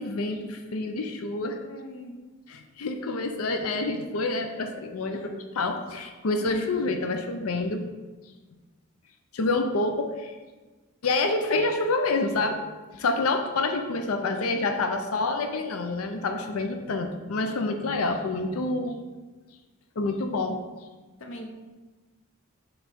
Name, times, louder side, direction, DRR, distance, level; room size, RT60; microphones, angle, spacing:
voice 1, 0.0-1.6 2.5-5.2 5.6-7.9 9.3-10.4 11.0-12.6 12.9-19.0 20.0-20.6, left 3 dB, 80° left, 5 dB, 0.5 m, -27 dB
voice 2, 1.7-2.1 5.1-5.4 21.2-21.4, left 1 dB, 65° left, 2 dB, 0.9 m, -41 dB
7.0 x 3.2 x 5.0 m, 1.3 s
head